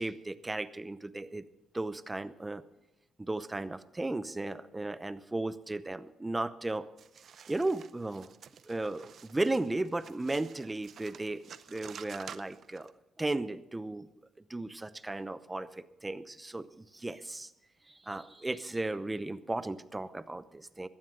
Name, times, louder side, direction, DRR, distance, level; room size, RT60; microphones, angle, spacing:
voice 1, 0.0-1.4 1.7-2.6 3.2-6.9 7.5-8.3 8.7-11.4 11.7-12.9 13.2-14.1 14.5-17.5 17.9-20.9, right 2 dB, 15° right, 14 dB, 0.8 m, -35 dB
sound 1, 7.0-12.9, right 8 dB, 60° right, 0.6 m, -51 dB
17.0 x 12.5 x 3.9 m, 0.94 s
cardioid pair, 90°, 0 cm